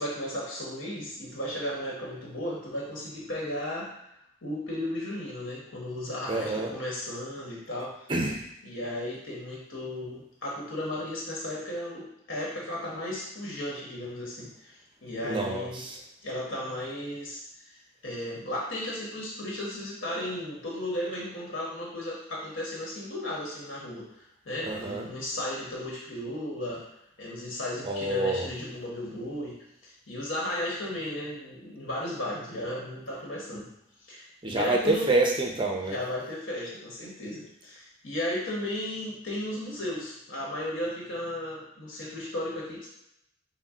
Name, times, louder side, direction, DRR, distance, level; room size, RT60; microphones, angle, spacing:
voice 1, 0.0-3.9 4.4-8.0 8.6-14.7 15.0-15.8 16.2-17.4 18.0-26.8 27.2-29.6 29.8-33.7 34.1-35.1 35.8-42.9, left 1 dB, 65° left, -4 dB, 1.2 m, -35 dB
voice 2, 6.3-6.7 8.1-8.4 15.2-16.0 24.6-25.1 27.8-28.5 34.4-36.0, right 2 dB, 25° right, 1 dB, 0.6 m, -27 dB
5.7 x 2.2 x 3.6 m, 0.80 s
head